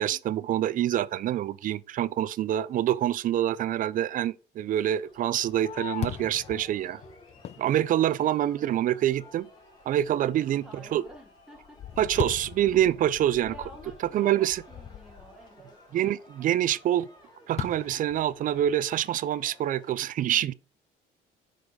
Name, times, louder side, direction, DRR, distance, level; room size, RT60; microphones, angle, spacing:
voice 1, 0.0-7.0 7.6-9.5 9.9-11.0 12.0-13.5 14.1-14.6 15.9-17.1 17.5-20.5, right 12 dB, 55° right, 0.5 m, -26 dB
sound 1, 4.6-19.9, left 1 dB, 25° left, 3.0 m, -55 dB
Fireworks, 5.1-8.7 9.2-9.3 9.8-10.2 10.6-15.5 17.6-18.9, left 9 dB, 40° left, 0.4 m, -40 dB
voice 2, 10.1-12.2 13.4-15.8, equal, 5° right, 1.6 m, -50 dB
6.3 x 5.0 x 4.0 m
cardioid pair, 110°, 17 cm